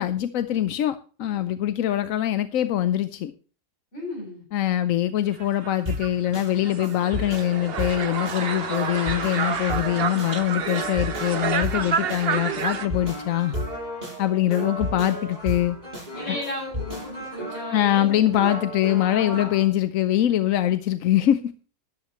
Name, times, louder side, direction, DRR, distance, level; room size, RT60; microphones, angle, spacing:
voice 1, 0.0-3.3 4.5-13.6 14.2-15.8 16.3-16.4 17.7-21.5, left 12 dB, 65° left, 11 dB, 0.9 m, -23 dB
voice 2, 3.9-4.4 16.1-18.6 19.1-19.5, left 1 dB, 35° left, -1 dB, 8.0 m, -34 dB
sound 1, 5.4-12.9, right 7 dB, 45° right, 0.9 m, -29 dB
sound 2, 5.9-19.7, equal, 25° right, 7.9 m, -34 dB
13.0 x 11.5 x 3.0 m, 0.37 s
omnidirectional pair, 1.8 m